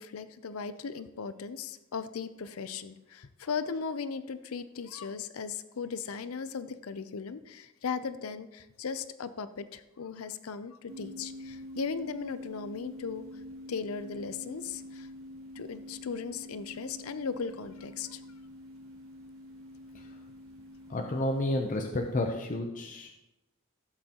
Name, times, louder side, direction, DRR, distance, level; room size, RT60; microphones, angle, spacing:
voice 1, 0.0-13.2 13.7-15.1 15.6-18.2, left 5 dB, 80° left, 13 dB, 0.6 m, -37 dB
sound 1, 10.9-22.4, left 1 dB, 70° right, 1.6 m, -47 dB
voice 2, 20.9-23.1, left 1 dB, 35° left, 2 dB, 0.7 m, -31 dB
15.0 x 7.8 x 2.9 m, 0.96 s
head